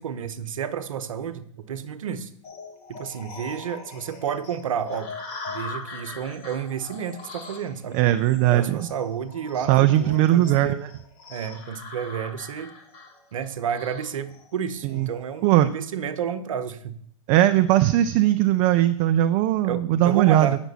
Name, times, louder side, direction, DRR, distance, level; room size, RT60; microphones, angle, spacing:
voice 1, 0.0-2.3 2.9-5.2 5.5-8.0 8.5-10.7 11.3-12.7 13.3-17.0 19.6-20.6, right 8 dB, 70° right, 12 dB, 0.8 m, -31 dB
sound 1, 2.4-15.4, left 3 dB, 35° left, 1.9 m, -41 dB
voice 2, 7.9-8.8 9.7-10.9 14.8-15.1 15.4-15.7 17.3-20.5, right 13 dB, 30° right, 10 dB, 0.4 m, -19 dB
9.0 x 6.1 x 4.1 m, 0.66 s
hypercardioid pair, 125°, 18 cm